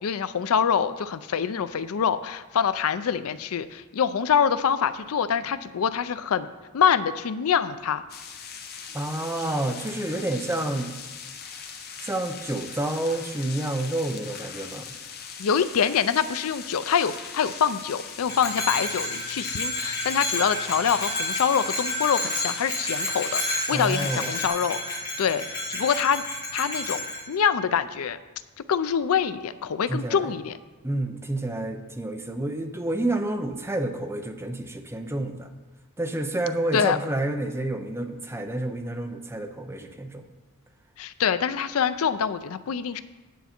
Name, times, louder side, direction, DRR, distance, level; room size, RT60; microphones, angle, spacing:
voice 1, 0.0-8.0 15.4-25.4 25.7-26.2 26.5-28.2 28.7-30.6 36.7-37.0 41.0-43.0, left 7 dB, 70° left, 13 dB, 0.4 m, -25 dB
sound 1, 8.1-24.5, left 6 dB, 45° left, 0.9 m, -40 dB
voice 2, 8.9-10.9 12.0-14.9 23.7-24.3 29.9-30.3 30.8-35.5 36.0-40.2, right 1 dB, 10° right, 5 dB, 0.6 m, -29 dB
Bell, 18.3-27.2, left 1 dB, 15° left, 2.3 m, -30 dB
9.2 x 8.2 x 4.4 m, 1.3 s
head